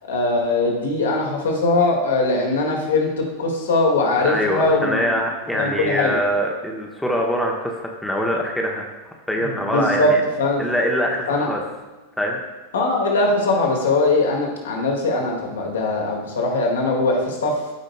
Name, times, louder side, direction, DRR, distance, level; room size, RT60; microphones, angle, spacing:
voice 1, 0.0-5.1 5.5-6.2 9.4-10.1 10.4-10.6 11.3-11.5 12.7-17.6, left 2 dB, 65° left, 0 dB, 1.8 m, -21 dB
voice 2, 4.2-8.9 9.3-10.2 10.6-11.6 12.2-12.4, equal, 5° left, 0 dB, 1.0 m, -23 dB
14.0 x 5.1 x 2.2 m, 1.2 s
figure-of-eight pair, 90°, 0 cm